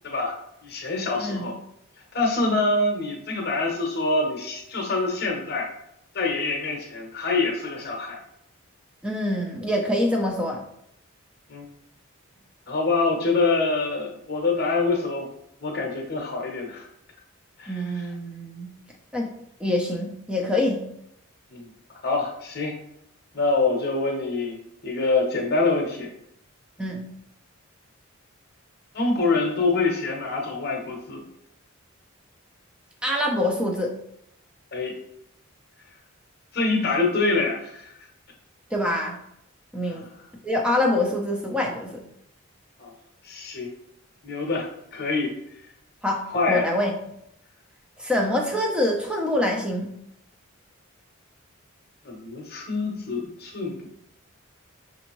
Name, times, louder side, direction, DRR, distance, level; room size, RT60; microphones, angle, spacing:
voice 1, 0.0-0.4 0.6-1.5 2.1-5.7 6.1-8.2 11.5-11.6 12.7-15.3 15.6-16.9 17.6-17.8 21.5-21.7 22.0-22.8 23.3-24.6 24.8-26.1 28.9-31.2 34.7-34.9 36.5-37.9 39.8-40.0 42.8-42.9 43.2-43.7 44.2-45.3 46.3-46.7 52.0-53.9, left 3 dB, 45° left, 1 dB, 0.9 m, -25 dB
voice 2, 9.0-10.6 17.7-18.7 19.1-19.3 19.6-20.9 26.8-27.0 33.0-33.9 38.7-39.2 39.7-40.1 40.4-42.0 46.0-46.9 48.0-49.9, left 1 dB, 5° right, 1 dB, 0.5 m, -25 dB
6.1 x 2.6 x 3.0 m, 0.77 s
head